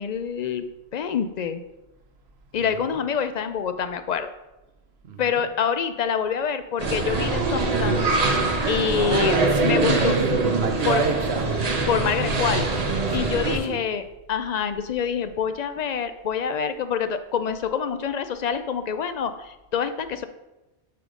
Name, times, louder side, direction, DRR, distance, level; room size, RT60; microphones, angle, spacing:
voice 1, 0.0-1.6 2.5-4.3 5.2-8.1 8.7-9.4 9.6-10.1 10.6-11.0 11.9-12.7 13.1-14.0 14.3-20.3, left 7 dB, 55° left, 0.5 m, -26 dB
voice 2, 2.6-3.0 5.0-5.4 9.0-11.6 13.1-13.8, right 5 dB, 80° right, 1.0 m, -30 dB
sound 1, 6.8-13.6, right 3 dB, 40° right, 1.0 m, -23 dB
8.1 x 5.7 x 3.8 m
omnidirectional pair, 1.1 m